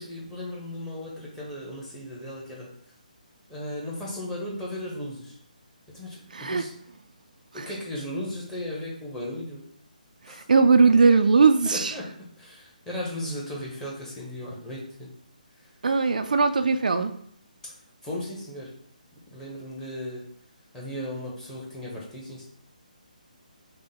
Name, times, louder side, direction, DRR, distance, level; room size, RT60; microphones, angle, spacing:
voice 1, 0.0-2.7 3.5-5.4 5.9-6.7 7.5-9.6 10.3-10.4 11.6-12.1 12.4-15.1 15.6-15.7 18.0-18.7 19.3-20.2 20.7-22.5, left 1 dB, 10° left, -5 dB, 1.0 m, -36 dB
voice 2, 6.3-6.6 7.6-7.7 10.5-11.9 15.8-17.1, right 4 dB, 65° right, 8 dB, 0.4 m, -19 dB
5.4 x 2.2 x 3.6 m, 0.63 s
figure-of-eight pair, 145°, 5 cm